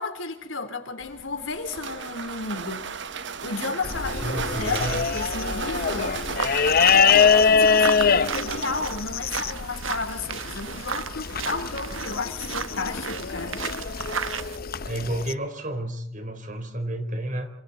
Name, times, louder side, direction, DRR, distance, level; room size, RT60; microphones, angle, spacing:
voice 1, 0.0-3.0 3.4-6.2 6.9-13.6, left 3 dB, 85° left, 3.7 m, -33 dB
sound 1, 1.0-9.7, right 5 dB, 65° right, 1.1 m, -35 dB
sound 2, 3.8-15.3, left 6 dB, 50° left, 0.8 m, -24 dB
voice 2, 4.2-5.0 14.8-17.5, right 1 dB, 40° right, 4.0 m, -31 dB
sound 3, 5.7-14.6, right 6 dB, 90° right, 1.3 m, -35 dB
27.5 x 27.0 x 4.2 m
head